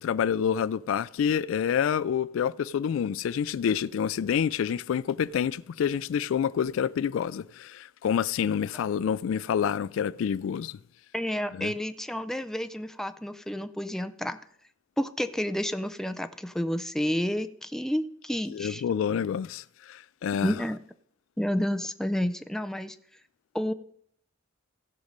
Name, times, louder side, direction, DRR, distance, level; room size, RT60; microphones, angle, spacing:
voice 1, 0.0-10.8 11.5-11.7 18.5-20.5, left 8 dB, 75° left, 0.3 m, -28 dB
voice 2, 11.1-14.4 15.0-18.8 20.4-20.8 21.4-23.0 23.5-23.7, equal, ahead, 0.4 m, -30 dB
16.0 x 5.4 x 5.1 m
head